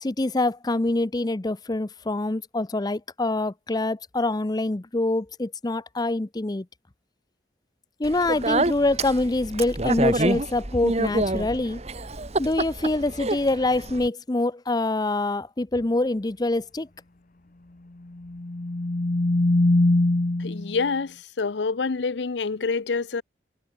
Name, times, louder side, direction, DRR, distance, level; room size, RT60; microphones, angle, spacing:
voice 1, 0.0-6.7 8.0-11.8 12.4-16.9, left 2 dB, 20° left, 0.6 m, -25 dB
Speech, 8.0-14.1, right 2 dB, 35° right, 1.9 m, -27 dB
sound 1, 18.2-20.8, left 1 dB, 50° left, 1.0 m, -22 dB
voice 2, 20.4-23.2, left 4 dB, 80° left, 0.6 m, -27 dB
head